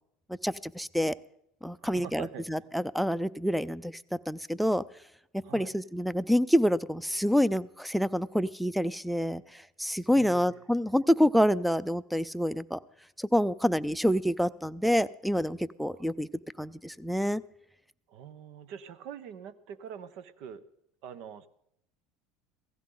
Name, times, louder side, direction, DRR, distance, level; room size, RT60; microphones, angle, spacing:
voice 1, 0.4-1.1 1.6-4.8 5.5-12.8 13.2-16.3 16.6-17.4, equal, ahead, 19 dB, 0.5 m, -27 dB
voice 2, 1.8-2.7 5.4-5.7 10.1-10.6 15.8-16.1 18.1-20.6 21.0-21.5, right 8 dB, 65° right, 15 dB, 1.0 m, -44 dB
16.5 x 15.5 x 3.9 m, 0.75 s
supercardioid pair, 95°, 0 cm